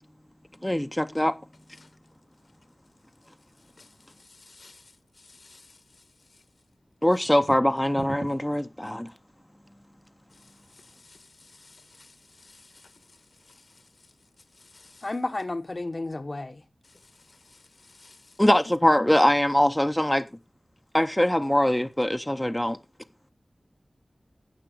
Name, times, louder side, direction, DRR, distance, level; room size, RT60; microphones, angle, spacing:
voice 1, 0.6-1.4 7.0-9.1 18.4-20.3 20.9-22.8, left 1 dB, 10° left, 0.6 m, -22 dB
voice 2, 4.2-5.8 10.4-13.2 13.4-13.8 14.6-15.1 16.9-18.4, left 3 dB, 75° left, 1.6 m, -55 dB
sound 1, 7.3-8.6, right 3 dB, 90° right, 0.8 m, -39 dB
voice 3, 15.0-16.6, left 2 dB, 50° left, 1.0 m, -32 dB
15.0 x 7.3 x 4.9 m
wide cardioid pair, 65°, 0 cm